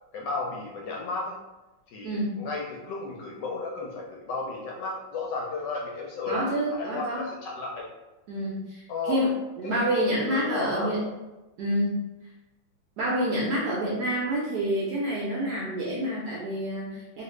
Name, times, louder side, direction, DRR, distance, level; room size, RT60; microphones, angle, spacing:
voice 1, 0.1-1.3 1.9-6.4 6.8-7.9 8.9-9.3 9.6-9.9 10.3-10.9, left 3 dB, 75° left, -2 dB, 1.1 m, -33 dB
voice 2, 2.0-2.4 6.3-7.2 8.3-11.0 11.6-12.0 13.0-17.2, equal, 75° right, -5 dB, 0.9 m, -28 dB
3.1 x 2.4 x 3.1 m, 1.1 s
omnidirectional pair, 2.2 m